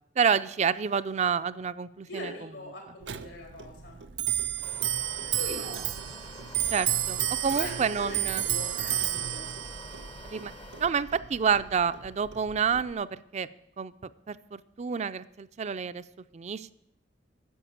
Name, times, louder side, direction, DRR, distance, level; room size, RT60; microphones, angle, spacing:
voice 1, 0.2-2.3 6.7-8.4 10.2-10.5 10.8-13.5 13.8-13.9 14.3-16.0 16.3-16.7, right 6 dB, 40° right, 15 dB, 0.4 m, -28 dB
voice 2, 2.1-4.0 5.2-5.8 7.5-9.5, left 1 dB, 90° left, 1 dB, 3.8 m, -41 dB
Clock, 3.0-12.9, right 12 dB, 90° right, 0.6 m, -32 dB
Wind, 4.6-10.9, left 3 dB, 30° left, 0.6 m, -48 dB
10.0 x 7.3 x 8.5 m, 0.81 s
head